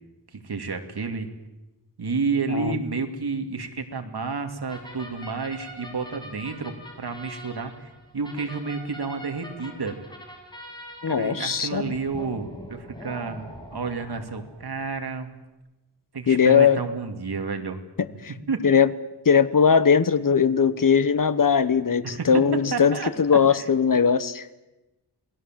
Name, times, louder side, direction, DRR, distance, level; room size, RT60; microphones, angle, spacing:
voice 1, 0.3-1.3 2.0-10.0 11.1-15.3 16.1-17.8 18.5-18.6 22.0-23.7, right 4 dB, 65° right, 6 dB, 2.7 m, -30 dB
voice 2, 2.5-2.8 11.0-11.9 16.3-16.8 18.0-18.3 18.6-18.9 19.2-24.5, left 6 dB, 50° left, 14 dB, 1.2 m, -20 dB
sound 1, 4.7-15.0, equal, 10° left, 5.8 m, -43 dB
28.0 x 20.0 x 7.6 m, 1.0 s
wide cardioid pair, 105°, 42 cm